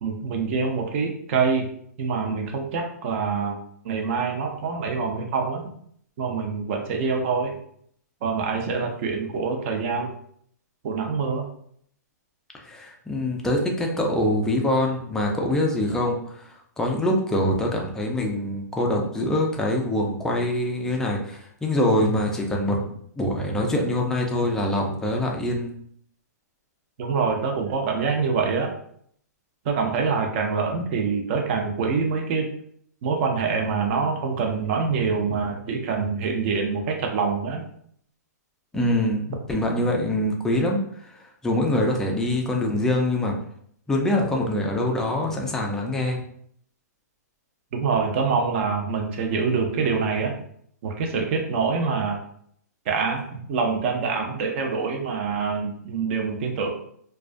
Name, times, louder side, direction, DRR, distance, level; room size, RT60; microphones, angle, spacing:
voice 1, 0.0-1.7 2.0-3.6 3.8-5.6 6.2-7.5 8.2-10.1 10.8-11.4 27.0-28.7 29.6-32.5 33.0-37.6 47.7-50.3 50.8-52.2 52.9-53.2 53.5-56.7, right 5 dB, 40° right, 2 dB, 0.5 m, -25 dB
voice 2, 12.6-16.5 16.8-25.7 38.7-43.4 43.9-46.2, left 1 dB, 5° left, 0 dB, 0.3 m, -24 dB
2.3 x 2.2 x 2.4 m, 0.65 s
hypercardioid pair, 145°, 9 cm